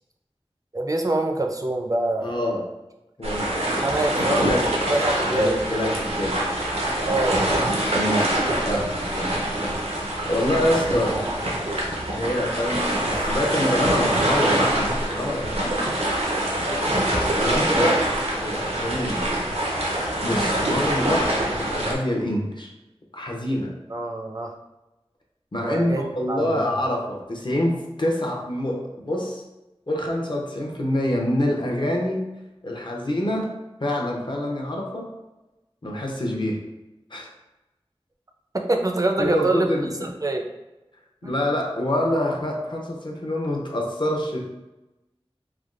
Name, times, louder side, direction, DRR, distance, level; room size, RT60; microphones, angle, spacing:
voice 1, 0.7-2.4 3.8-4.3 4.9-5.6 7.1-7.4 8.7-8.8 16.9-18.1 23.9-24.5 25.6-26.8 38.5-39.7 40.0-40.4 41.2-41.4, right 2 dB, 35° right, 3 dB, 0.4 m, -25 dB
voice 2, 2.2-2.6 3.2-3.6 4.1-4.7 5.2-6.4 7.9-8.3 8.7-8.9 9.2-9.3 10.2-11.3 12.1-15.6 17.4-17.9 18.4-19.5 20.2-21.3 21.6-22.7 23.1-23.7 25.5-29.4 29.9-32.3 32.6-33.5 33.8-35.1 35.8-36.6 37.1-37.3 39.2-40.1 41.2-44.5, left 1 dB, 50° left, 0 dB, 0.6 m, -26 dB
sound 1, 3.2-21.9, right 1 dB, 85° right, 0.6 m, -24 dB
3.3 x 2.2 x 2.4 m, 1.0 s
wide cardioid pair, 40°, 10 cm